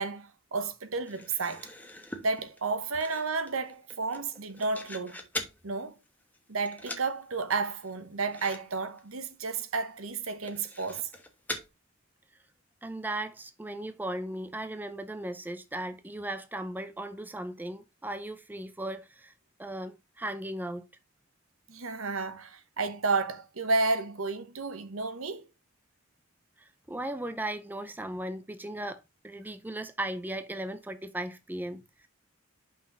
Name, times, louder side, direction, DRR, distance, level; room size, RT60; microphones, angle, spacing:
voice 1, 0.0-1.7 2.2-5.2 5.6-6.0 6.5-11.1 21.7-25.5, right 3 dB, 80° right, 1.1 m, -32 dB
sound 1, 1.1-5.6 6.0-6.4 6.7-7.1 7.4-7.5 7.8-7.9 8.3-8.6 8.9-9.0 9.5-9.6 10.3-11.7, left 2 dB, 10° left, 1.1 m, -42 dB
voice 2, 12.8-19.3 19.6-20.8 26.9-32.1, right 1 dB, 10° right, 0.5 m, -37 dB
5.7 x 4.2 x 6.1 m
head